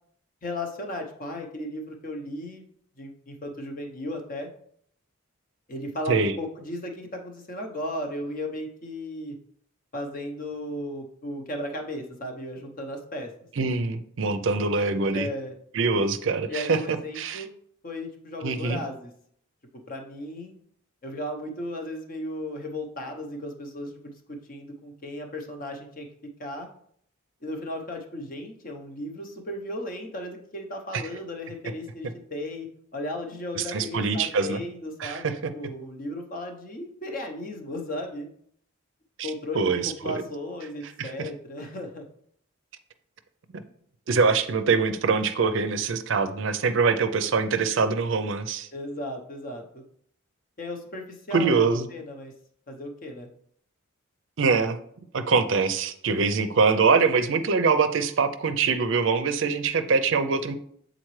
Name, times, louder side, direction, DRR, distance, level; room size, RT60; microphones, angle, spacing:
voice 1, 0.4-2.6 3.0-4.5 5.7-9.4 9.9-13.3 15.1-15.5 16.5-17.5 17.8-19.1 19.9-20.5 21.0-26.1 26.4-26.7 27.4-32.7 32.9-38.3 39.2-42.0 48.7-49.8 50.6-52.3 52.7-53.3, left 1 dB, 40° left, 3 dB, 0.8 m, -35 dB
voice 2, 13.6-15.3 15.7-17.4 18.4-18.8 30.9-31.0 33.6-34.6 35.0-35.3 39.2-39.3 39.5-40.2 41.0-41.1 44.1-48.7 51.3-51.9 54.4-54.8 55.1-60.5, right 4 dB, 60° right, 9 dB, 0.5 m, -24 dB
7.7 x 3.9 x 3.1 m, 0.65 s
head